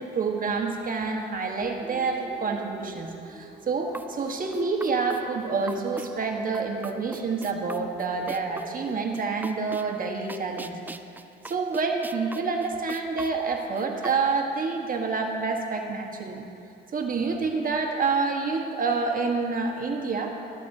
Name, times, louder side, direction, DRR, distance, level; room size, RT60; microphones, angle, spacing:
voice 1, 0.0-10.8 11.4-16.5 16.9-20.4, right 4 dB, 45° right, 2 dB, 1.3 m, -28 dB
sound 1, 1.8-9.1, right 2 dB, 25° right, 1.4 m, -45 dB
sound 2, 3.9-14.2, right 2 dB, 10° right, 0.3 m, -42 dB
13.0 x 13.0 x 2.7 m, 2.6 s
cardioid pair, 90°, 20 cm